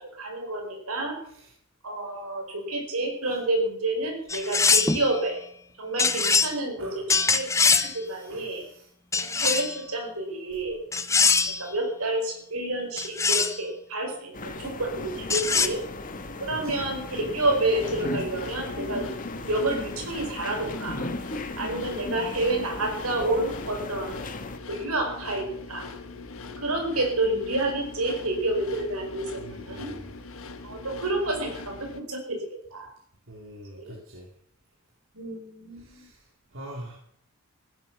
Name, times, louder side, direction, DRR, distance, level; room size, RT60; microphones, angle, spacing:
voice 1, 0.0-1.2 1.8-5.4 5.8-8.6 9.1-10.8 11.6-15.8 16.4-19.1 19.5-21.0 21.6-24.1 24.7-25.8 26.6-29.9 30.6-32.4 32.7-32.9 33.7-33.9 35.1-36.1, right 2 dB, 80° right, 2 dB, 5.1 m, -29 dB
sound 1, 4.3-5.0 6.0-6.5 7.1-7.9 9.1-9.8 10.9-11.6 13.0-13.6 15.3-15.7, left 4 dB, 15° left, 0.7 m, -22 dB
voice 2, 8.0-8.9 15.6-15.8 16.5-16.9 29.4-30.1 33.3-34.3 35.7-37.0, right 1 dB, 60° right, -1 dB, 2.8 m, -45 dB
sound 2, 14.3-24.6, left 2 dB, 35° left, 1.4 m, -37 dB
sound 3, 17.4-32.0, left 3 dB, 65° left, 1.5 m, -42 dB
15.5 x 11.0 x 6.9 m, 0.67 s
head